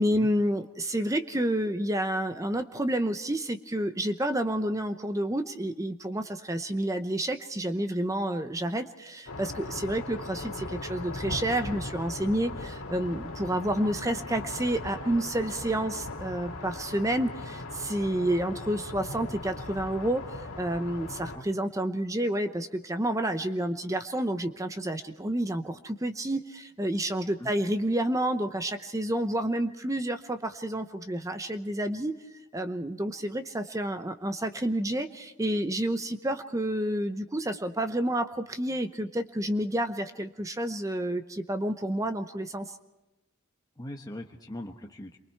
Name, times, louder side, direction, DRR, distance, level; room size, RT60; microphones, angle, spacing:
voice 1, 0.0-20.3 20.6-32.2 32.5-42.7, right 1 dB, 15° right, 8 dB, 0.8 m, -29 dB
sound 1, 9.3-21.4, left 2 dB, 75° left, 2.1 m, -39 dB
voice 2, 43.8-45.2, left 1 dB, 15° left, 1 dB, 1.0 m, -40 dB
28.0 x 23.5 x 4.6 m, 1.0 s
head